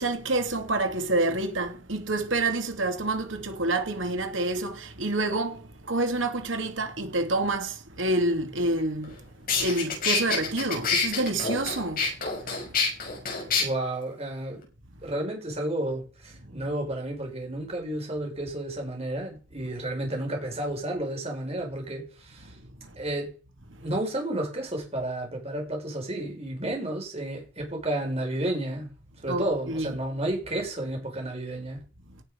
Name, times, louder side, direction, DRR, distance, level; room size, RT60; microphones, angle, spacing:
voice 1, 0.0-9.3 9.5-13.6 22.5-23.0 23.7-23.9 29.3-30.0, right 2 dB, 85° right, 2.5 m, -28 dB
sound 1, 9.0-9.1 9.5-13.6, left 5 dB, 50° left, 6.5 m, -27 dB
voice 2, 13.6-14.7 15.0-22.6 23.0-23.3 23.8-28.9 29.2-31.8, right 1 dB, 35° right, 5.7 m, -31 dB
17.0 x 7.5 x 5.3 m
head